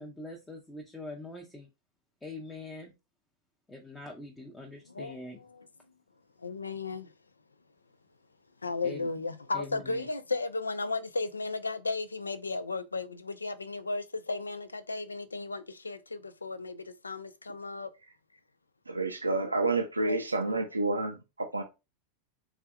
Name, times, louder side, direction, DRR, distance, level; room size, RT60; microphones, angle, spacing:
voice 1, 0.0-1.7 2.2-2.9 3.7-5.4 8.8-9.1 9.5-10.0, left 2 dB, 5° left, 0.6 m, -43 dB
voice 2, 4.9-5.7 6.4-7.1 8.6-17.9 20.0-20.6, left 3 dB, 80° left, 0.3 m, -35 dB
voice 3, 18.9-21.6, right 3 dB, 80° right, 0.4 m, -29 dB
3.5 x 3.2 x 2.2 m
figure-of-eight pair, 90°, 0 cm